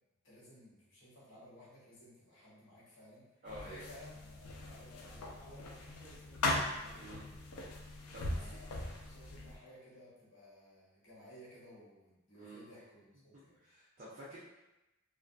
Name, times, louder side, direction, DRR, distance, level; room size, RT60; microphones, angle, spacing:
voice 1, 0.2-7.1 8.2-13.6, left 1 dB, 60° left, -8 dB, 1.0 m, -57 dB
voice 2, 3.4-3.9 7.0-7.3 8.1-8.6 12.3-12.8 13.6-14.4, right 1 dB, 40° right, -9 dB, 0.5 m, -50 dB
sound 1, 3.5-9.6, left 2 dB, 90° left, 0.4 m, -40 dB
2.5 x 2.4 x 2.2 m, 0.99 s
head